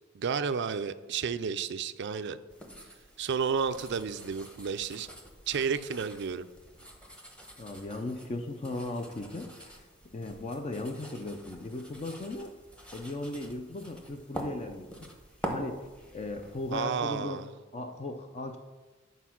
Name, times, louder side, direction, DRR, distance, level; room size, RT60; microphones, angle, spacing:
voice 1, 0.1-2.4 3.2-5.1 5.5-6.5 16.7-17.5, right 6 dB, 55° right, 12 dB, 0.4 m, -31 dB
sound 1, 2.5-16.8, right 1 dB, 5° left, 0.9 m, -45 dB
voice 2, 7.6-9.9 10.1-12.5 12.9-15.1 15.5-15.8 16.1-17.4 17.7-18.6, left 2 dB, 30° left, 5 dB, 0.5 m, -37 dB
8.2 x 4.5 x 5.9 m, 1.3 s
head